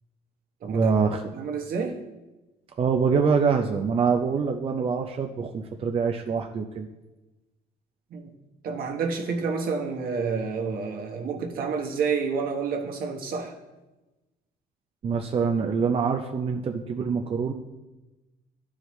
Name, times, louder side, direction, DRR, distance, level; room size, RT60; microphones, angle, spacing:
voice 1, 0.7-1.2 2.8-6.9 15.0-17.5, right 5 dB, 35° right, 4 dB, 0.5 m, -25 dB
voice 2, 1.3-2.0 8.1-8.3 8.6-13.5, right 5 dB, 60° right, 2 dB, 1.2 m, -29 dB
12.0 x 4.8 x 3.1 m, 1.1 s
cardioid pair, 110°, 17 cm